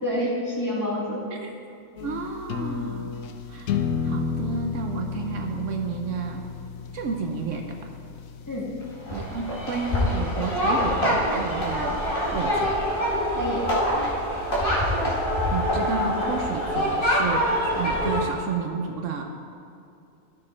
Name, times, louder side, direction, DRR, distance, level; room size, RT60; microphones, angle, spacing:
voice 1, 0.0-1.2 8.5-8.7 13.4-13.7, equal, 15° left, -6 dB, 1.9 m, -27 dB
sound 1, 2.0-10.0, left 7 dB, 80° left, 1.0 m, -33 dB
voice 2, 2.0-3.2 3.5-6.5 6.9-7.9 9.1-12.7 15.5-19.2, right 5 dB, 70° right, 3 dB, 1.0 m, -31 dB
sound 2, 9.1-18.2, equal, 40° left, 2.0 m, -25 dB
13.0 x 6.4 x 4.3 m, 2.6 s
omnidirectional pair, 1.4 m